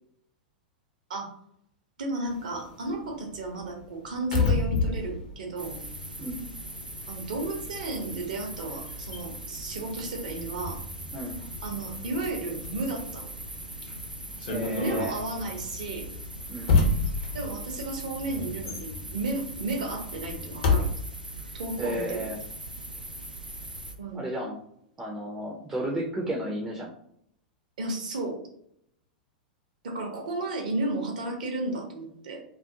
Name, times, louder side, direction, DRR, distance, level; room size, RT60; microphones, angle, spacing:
voice 1, 2.0-5.8 7.1-10.8 11.6-13.3 14.8-16.1 17.3-20.9 21.5-22.3 24.0-24.2 27.8-28.4 29.8-32.4, right 2 dB, 60° right, 1 dB, 0.7 m, -33 dB
sound 1, 2.3-6.7 7.0-20.9, left 3 dB, 50° left, 0.6 m, -31 dB
sound 2, 5.6-24.0, right 1 dB, 90° right, 0.4 m, -40 dB
voice 2, 6.2-6.5 11.1-11.4 14.5-15.1 16.5-16.8 21.8-22.4 24.1-24.6 25.0-26.9, right 1 dB, 15° right, -3 dB, 0.4 m, -33 dB
2.3 x 2.1 x 2.7 m, 0.70 s
figure-of-eight pair, 95°, 5 cm